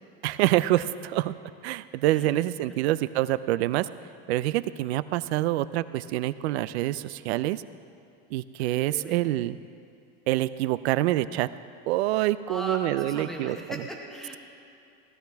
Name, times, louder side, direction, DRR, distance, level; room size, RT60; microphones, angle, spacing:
voice 1, 0.2-1.3 1.6-3.9 4.3-7.6 8.3-9.6 10.3-11.5 11.9-13.6, right 15 dB, 80° right, 15 dB, 0.5 m, -26 dB
voice 2, 8.6-9.2 12.5-14.4, equal, ahead, 0 dB, 0.9 m, -38 dB
17.0 x 13.0 x 3.5 m, 2.7 s
supercardioid pair, 180°, 32 cm